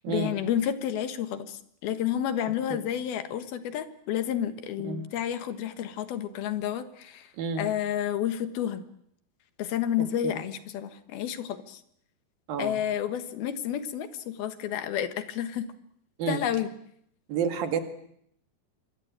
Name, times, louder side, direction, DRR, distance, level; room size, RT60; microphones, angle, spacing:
voice 1, 0.1-7.3 7.6-8.8 9.6-11.8 12.6-15.7 16.3-16.7, left 10 dB, 80° left, 10 dB, 3.4 m, -30 dB
voice 2, 7.4-7.7 10.2-10.3 12.5-12.8 16.2-16.5 17.3-17.8, right 6 dB, 70° right, 7 dB, 3.8 m, -29 dB
25.5 x 22.5 x 9.0 m, 0.70 s
omnidirectional pair, 4.3 m